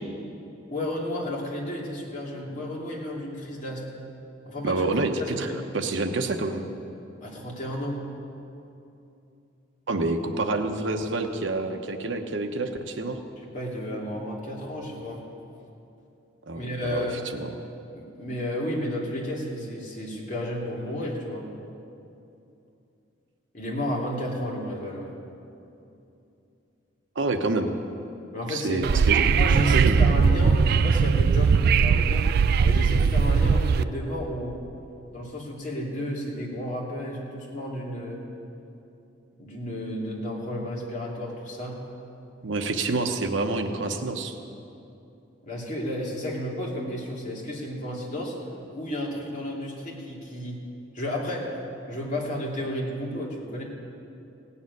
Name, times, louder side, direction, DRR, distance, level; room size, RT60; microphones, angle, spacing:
voice 1, 0.7-3.9 4.5-4.8 5.2-5.6 7.2-8.0 13.4-15.2 16.5-17.2 17.9-21.5 23.5-25.1 28.3-28.9 29.2-32.3 32.6-34.6 35.1-38.2 39.3-41.8 45.4-48.3 48.7-50.6 50.9-51.5 51.9-53.6, left 1 dB, 40° left, -3 dB, 2.7 m, -32 dB
voice 2, 4.6-5.1 5.4-6.7 9.9-13.2 16.5-17.5 27.1-27.7 28.5-29.3 29.7-30.0 42.4-44.3, right 2 dB, 75° right, 6 dB, 1.0 m, -28 dB
Wind / Subway metro underground, 28.8-33.8, right 5 dB, 55° right, 0.3 m, -20 dB
17.0 x 7.1 x 9.5 m, 2.7 s
head